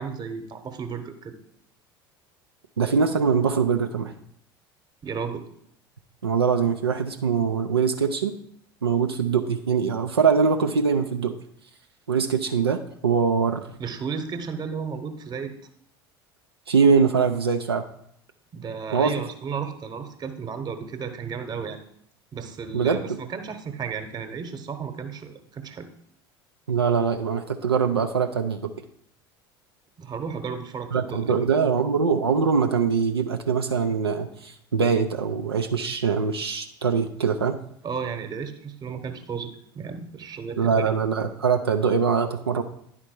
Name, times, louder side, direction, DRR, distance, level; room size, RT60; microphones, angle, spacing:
voice 1, 0.0-1.3 5.0-5.4 13.8-15.5 18.5-21.8 22.3-25.9 30.0-31.4 37.8-40.9, right 6 dB, 30° right, 7 dB, 1.0 m, -33 dB
voice 2, 2.8-4.1 6.2-8.4 8.8-11.3 12.1-13.6 16.7-17.8 18.9-19.1 22.7-23.0 26.7-28.7 30.9-37.6 40.6-42.6, right 6 dB, 85° right, 5 dB, 0.4 m, -23 dB
9.8 x 4.3 x 4.4 m, 0.69 s
figure-of-eight pair, 70°, 13 cm